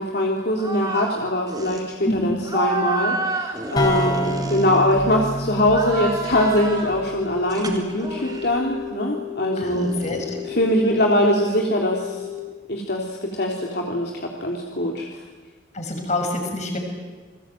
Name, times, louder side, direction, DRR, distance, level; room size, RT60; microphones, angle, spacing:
voice 1, 0.0-9.9 10.4-12.2 12.7-15.1, left 1 dB, 60° left, 0 dB, 3.4 m, -22 dB
sound 1, 0.6-1.2 1.5-1.8 2.4-5.2 5.6-7.0 7.5-8.6 9.7-11.5, right 2 dB, 20° right, 4.0 m, -30 dB
voice 2, 2.0-2.4 9.6-10.4 15.7-16.8, left 1 dB, 40° left, 4 dB, 6.4 m, -26 dB
sound 2, 3.8-7.4, equal, 25° left, 4.3 m, -28 dB
sound 3, 6.3-12.4, left 15 dB, 40° right, 5.9 m, -34 dB
29.5 x 22.0 x 9.2 m, 1.4 s
head